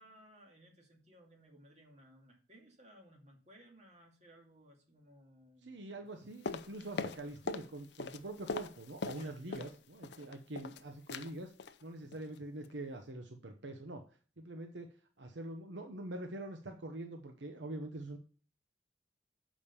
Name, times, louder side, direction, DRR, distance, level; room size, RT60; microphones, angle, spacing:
voice 1, 0.0-6.1 9.1-9.7 10.2-10.4, right 1 dB, 35° right, 1 dB, 2.5 m, -60 dB
voice 2, 5.6-11.5 11.8-14.0 14.4-18.2, right 1 dB, 75° right, 5 dB, 1.0 m, -44 dB
sound 1, 6.4-7.7 7.9-9.7 10.0-10.8 11.1-11.3 11.6-11.8 12.1-12.4 12.6-12.7, left 4 dB, 65° left, 0.6 m, -41 dB
7.2 x 5.2 x 6.8 m, 0.40 s
head